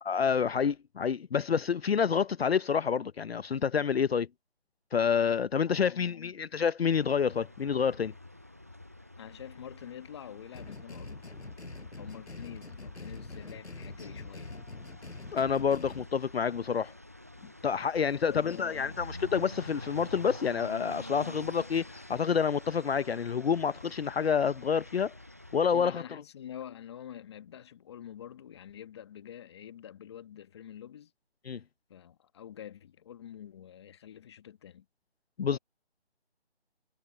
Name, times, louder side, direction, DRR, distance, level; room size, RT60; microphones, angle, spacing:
voice 1, 0.0-4.3 4.9-8.1 15.3-16.9 17.6-25.1 25.5-26.0 31.5-31.6 35.4-35.6, left 7 dB, 65° left, 0.7 m, -28 dB
voice 2, 5.6-6.3 9.2-11.2 12.0-14.5 18.2-18.9 25.7-31.1 31.9-34.9 35.5-35.6, left 10 dB, 25° left, 1.4 m, -47 dB
sound 1, 6.9-25.7, left 1 dB, 15° right, 0.5 m, -48 dB
sound 2, 10.5-16.1, left 3 dB, 85° left, 6.7 m, -44 dB
figure-of-eight pair, 160°, 33 cm